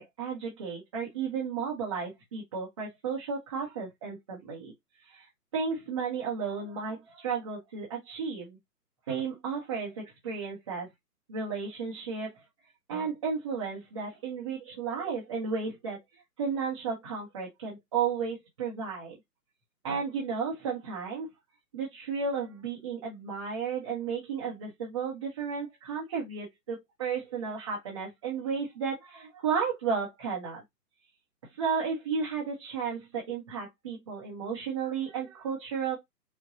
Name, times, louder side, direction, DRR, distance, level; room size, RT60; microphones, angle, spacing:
voice 1, 0.0-4.7 5.0-8.6 9.1-10.9 11.3-12.4 12.9-16.0 16.4-19.2 19.8-21.3 21.7-30.6 31.6-36.0, right 6 dB, 20° right, 0.7 m, -33 dB
4.8 x 2.2 x 2.7 m
figure-of-eight pair, 135°, 48 cm